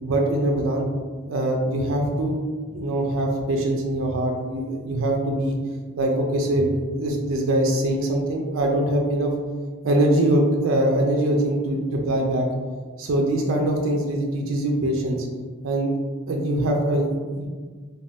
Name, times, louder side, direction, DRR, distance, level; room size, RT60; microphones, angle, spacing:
voice 1, 0.0-0.9 1.2-2.4 2.7-5.5 6.0-9.3 9.8-12.5 13.0-15.3 15.6-15.9 16.3-17.5, right 1 dB, 65° right, 1 dB, 0.4 m, -23 dB
2.5 x 2.2 x 3.3 m, 1.5 s
head